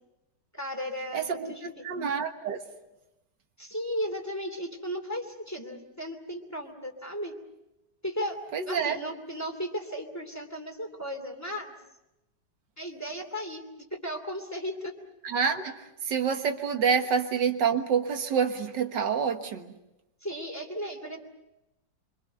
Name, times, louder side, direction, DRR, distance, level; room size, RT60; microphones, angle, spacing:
voice 1, 0.5-1.8 3.6-7.3 8.0-8.4 8.6-11.7 12.8-13.6 13.9-14.9 20.2-21.2, equal, 10° left, 4 dB, 2.7 m, -35 dB
voice 2, 1.1-2.6 8.5-9.0 15.2-19.7, right 6 dB, 80° right, 6 dB, 2.1 m, -27 dB
25.5 x 25.0 x 6.7 m, 0.93 s
omnidirectional pair, 1.9 m